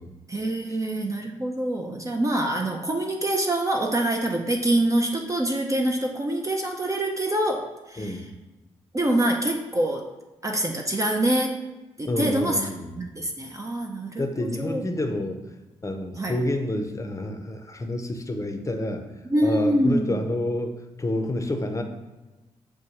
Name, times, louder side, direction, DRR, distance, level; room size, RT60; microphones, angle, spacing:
voice 1, 0.3-8.2 8.9-10.1 10.4-11.6 12.0-12.7 13.0-14.8 16.2-16.4 19.3-20.2, right 1 dB, 25° right, 1 dB, 0.5 m, -25 dB
voice 2, 12.1-13.0 14.2-15.4 15.8-19.1 19.4-21.8, left 1 dB, 25° left, 5 dB, 0.6 m, -29 dB
6.2 x 2.2 x 2.9 m, 1.1 s
supercardioid pair, 45°, 13 cm